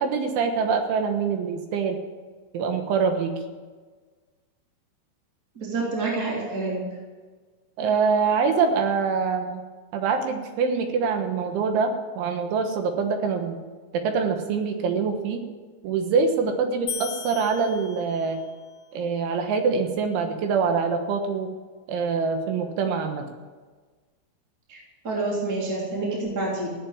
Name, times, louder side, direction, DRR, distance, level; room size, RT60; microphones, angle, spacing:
voice 1, 0.0-2.0 2.5-3.4 7.8-9.6 9.9-11.9 12.2-13.6 13.9-15.4 15.8-18.4 18.9-21.5 21.9-23.3, right 5 dB, 75° right, 5 dB, 3.5 m, -24 dB
voice 2, 5.5-6.8 24.7-24.8 25.0-26.7, right 2 dB, 20° right, -4 dB, 2.9 m, -27 dB
sound 1, 16.9-18.5, left 7 dB, 50° left, 2.6 m, -36 dB
15.5 x 8.6 x 8.9 m, 1.4 s
omnidirectional pair, 5.8 m